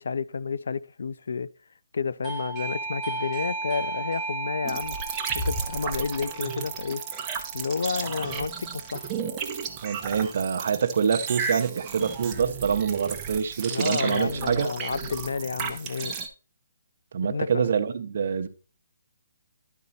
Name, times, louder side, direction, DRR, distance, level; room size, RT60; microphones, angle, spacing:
voice 1, 0.0-1.5 1.9-5.0 5.3-7.1 7.5-9.1 13.7-16.2 17.3-17.7, left 5 dB, 70° left, 0.4 m, -30 dB
Doorbell, 2.2-8.7, right 3 dB, 5° left, 1.5 m, -35 dB
sound 1, 4.7-16.3, right 5 dB, 15° right, 0.7 m, -33 dB
voice 2, 9.8-14.7 17.1-18.5, right 6 dB, 50° right, 0.7 m, -26 dB
11.0 x 4.2 x 4.0 m
hypercardioid pair, 170°, 0 cm